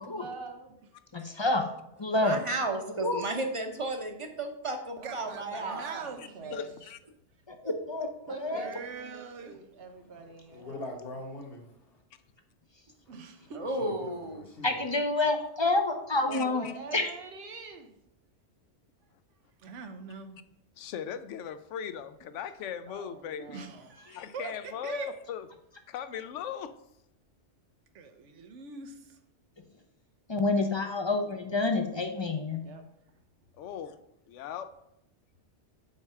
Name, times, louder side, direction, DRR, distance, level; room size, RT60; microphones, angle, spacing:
voice 1, 0.1-0.8 5.0-6.8 8.3-10.8 16.3-17.9 22.9-23.9 32.6-32.9, right 3 dB, 60° right, 1.1 m, -45 dB
voice 2, 1.1-1.7 2.0-2.5 3.0-3.2 7.5-8.7 14.6-16.7 16.9-17.1 30.3-32.6, left 2 dB, 35° left, 0.5 m, -28 dB
voice 3, 2.2-5.8 7.6-7.7 13.5-14.4, right 2 dB, 30° right, 0.7 m, -33 dB
voice 4, 5.0-6.6 8.5-9.6 13.1-13.6 19.6-20.4 23.5-25.1 27.9-29.2, right 5 dB, 85° right, 1.1 m, -42 dB
voice 5, 6.2-7.0 16.3-16.7 20.8-23.7 24.1-25.5 25.9-26.7 33.6-34.0 34.3-34.7, left 8 dB, 85° left, 0.9 m, -39 dB
voice 6, 10.1-12.0 13.0-13.1 13.4-14.9, left 2 dB, 55° left, 1.4 m, -44 dB
5.4 x 4.7 x 5.5 m
omnidirectional pair, 1.2 m